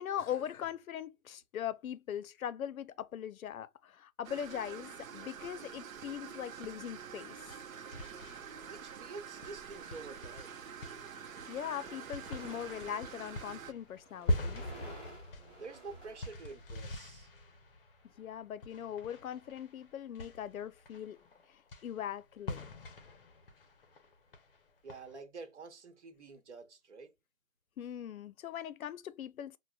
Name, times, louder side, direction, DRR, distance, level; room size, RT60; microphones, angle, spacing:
voice 1, 0.0-7.4 11.5-14.7 18.2-21.2 21.5-22.7 27.8-29.6, left 9 dB, 90° left, 0.5 m, -40 dB
sound 1, 4.2-13.7, right 7 dB, 80° right, 0.6 m, -47 dB
sound 2, 7.1-25.2, left 1 dB, 45° left, 0.6 m, -43 dB
voice 2, 8.6-10.6 15.6-17.3 24.8-27.1, right 4 dB, 55° right, 1.0 m, -48 dB
sound 3, 10.8-17.1, right 1 dB, 5° left, 0.7 m, -55 dB
4.7 x 2.1 x 2.2 m
hypercardioid pair, 155°, 40 cm